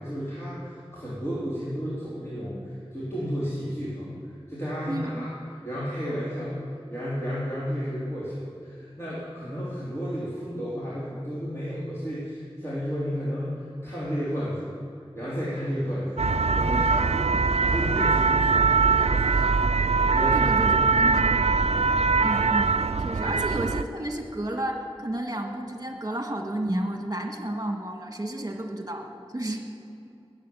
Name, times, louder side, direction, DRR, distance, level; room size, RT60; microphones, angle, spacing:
voice 1, 0.0-4.1 4.5-5.3 5.7-6.6 6.9-14.7 15.1-16.2 16.5-19.7 20.0-20.9 22.0-22.2 23.2-23.3, equal, 25° left, -9 dB, 3.4 m, -32 dB
voice 2, 4.9-5.3 20.3-21.6 22.2-22.7 23.0-29.6, right 1 dB, 35° right, 2 dB, 1.8 m, -32 dB
sound 1, 16.2-23.8, right 4 dB, 90° right, 0.4 m, -22 dB
19.0 x 7.8 x 7.1 m, 2.5 s
wide cardioid pair, 40°, 10 cm